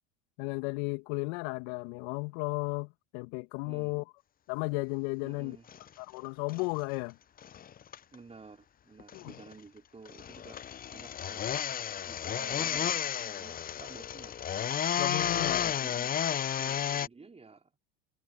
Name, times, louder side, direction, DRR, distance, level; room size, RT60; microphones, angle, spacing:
voice 1, 0.4-4.0 4.5-5.6 6.0-7.2 9.1-9.3 15.0-15.6, left 29 dB, 60° left, 2.3 m, -34 dB
voice 2, 3.6-4.0 5.2-5.7 8.1-10.6 10.9-11.5 12.1-14.4 15.2-16.2 16.6-17.7, right 4 dB, 15° right, 4.1 m, -51 dB
sound 1, 5.7-5.9 6.5-6.6 7.4-8.1 9.0-9.5 10.1-17.1, left 9 dB, 25° left, 0.8 m, -32 dB
hypercardioid pair, 80°, 36 cm